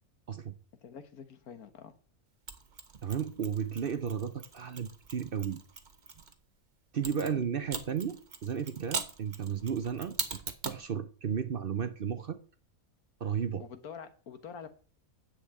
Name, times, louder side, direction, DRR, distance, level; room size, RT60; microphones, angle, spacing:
voice 1, 0.8-2.0 7.2-7.4 13.6-14.7, left 7 dB, 85° left, 1.6 m, -46 dB
Mechanisms, 2.5-6.3 7.0-10.9, right 5 dB, 35° right, 1.1 m, -41 dB
voice 2, 3.0-5.6 6.9-10.2 10.6-12.4 13.2-13.6, right 7 dB, 50° right, 0.7 m, -33 dB
10.0 x 5.9 x 8.4 m
omnidirectional pair, 1.5 m